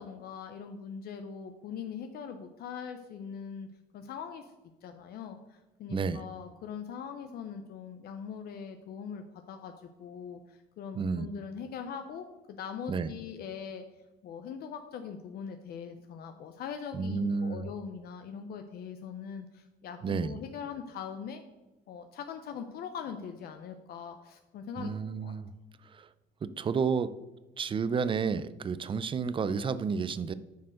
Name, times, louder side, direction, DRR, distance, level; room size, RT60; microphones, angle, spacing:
voice 1, 0.0-3.7 3.9-4.5 4.8-13.8 14.2-21.4 21.9-25.3, left 7 dB, 65° left, 7 dB, 0.7 m, -41 dB
voice 2, 5.9-6.2 11.0-11.3 12.9-13.1 16.9-17.6 20.0-20.4 24.8-25.5 25.8-26.1 26.4-27.2 27.6-30.3, right 5 dB, 30° right, 15 dB, 0.5 m, -31 dB
9.3 x 4.6 x 6.3 m, 1.1 s
cardioid pair, 110°, 17 cm